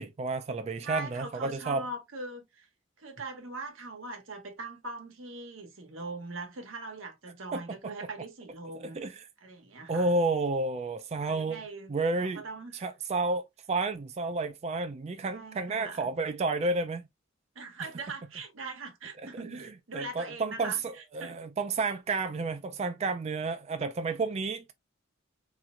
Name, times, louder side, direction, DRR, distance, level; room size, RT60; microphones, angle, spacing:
voice 1, 0.0-1.9 7.5-7.9 8.9-9.3 9.9-11.6 11.9-12.4 12.7-17.1 17.8-17.9 19.2-24.7, right 3 dB, 35° right, 0.4 m, -31 dB
voice 2, 0.8-2.7 3.0-9.0 9.4-10.1 11.2-11.9 12.2-12.8 15.3-16.0 17.5-20.8 21.2-21.4, right 3 dB, 85° right, 1.1 m, -41 dB
4.2 x 3.0 x 2.4 m
head